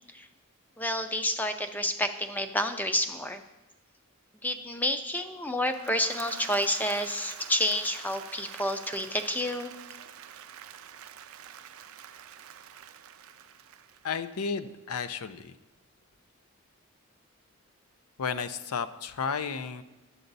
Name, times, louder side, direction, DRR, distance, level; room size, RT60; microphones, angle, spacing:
voice 1, 0.8-3.4 4.4-9.7, left 1 dB, 10° left, 8 dB, 0.4 m, -29 dB
Applause / Crowd, 5.5-14.6, right 9 dB, 75° right, 0.4 m, -46 dB
voice 2, 14.0-15.5 18.2-19.8, left 6 dB, 85° left, 12 dB, 0.5 m, -33 dB
11.0 x 7.8 x 4.0 m, 1.1 s
head